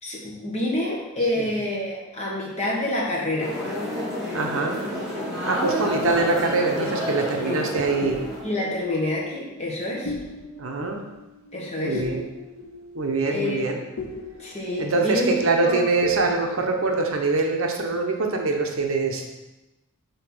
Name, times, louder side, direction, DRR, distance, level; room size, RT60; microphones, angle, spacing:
voice 1, 0.0-3.5 7.4-7.6 8.4-10.1 11.5-12.0 13.3-13.6 14.4-15.3 15.6-15.8, left 1 dB, 30° left, -4 dB, 1.6 m, -27 dB
sound 1, 3.4-8.8, equal, ahead, 2.1 m, -30 dB
voice 2, 4.3-4.8 5.4-8.2 10.6-11.0 11.8-12.2 12.9-13.8 14.8-19.3, right 3 dB, 65° right, 2 dB, 0.9 m, -24 dB
sound 2, 6.0-7.7 8.0-17.5, left 1 dB, 65° left, 0.8 m, -39 dB
5.6 x 4.0 x 6.0 m, 1.0 s
head